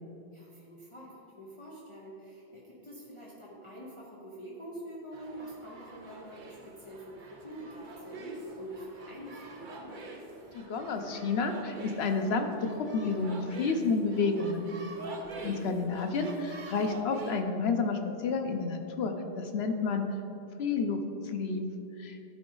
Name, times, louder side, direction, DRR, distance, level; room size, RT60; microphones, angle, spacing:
voice 1, 0.3-9.9, right 1 dB, 30° left, -6 dB, 1.0 m, -46 dB
sound 1, 5.1-17.4, right 2 dB, 55° right, 0.9 m, -46 dB
voice 2, 10.5-14.7 15.4-20.0 20.6-21.6 22.0-22.2, left 4 dB, 85° left, 5 dB, 1.0 m, -30 dB
12.0 x 4.9 x 3.9 m, 2.8 s
omnidirectional pair, 1.0 m